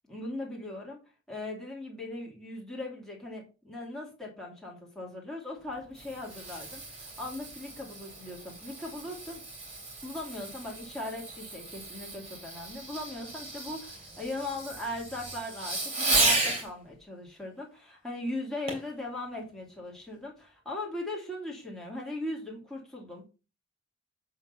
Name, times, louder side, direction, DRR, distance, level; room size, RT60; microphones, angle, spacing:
voice 1, 0.1-1.0 1.3-9.4 10.0-23.3, left 1 dB, ahead, -3 dB, 2.5 m, -39 dB
Fireworks, 5.7-16.7 18.7-18.9 19.5-19.6, right 2 dB, 30° right, 2.8 m, -34 dB
7.9 x 3.9 x 5.6 m, 0.32 s
head